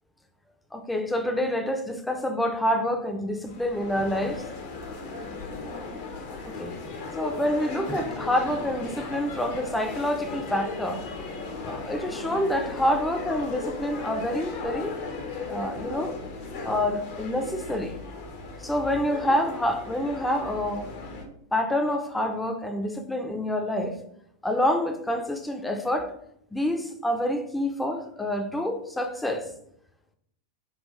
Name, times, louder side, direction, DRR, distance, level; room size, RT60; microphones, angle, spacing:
voice 1, 0.7-4.4 6.4-6.8 7.2-11.0 11.7-14.9 15.5-16.1 16.6-17.9 18.6-20.9 21.5-23.9 24.4-26.1 26.5-29.5, left 1 dB, 5° left, 0.4 m, -27 dB
sound 1, 3.5-21.2, left 3 dB, 55° left, 0.7 m, -37 dB
3.7 x 2.2 x 3.1 m
figure-of-eight pair, 90°, 0 cm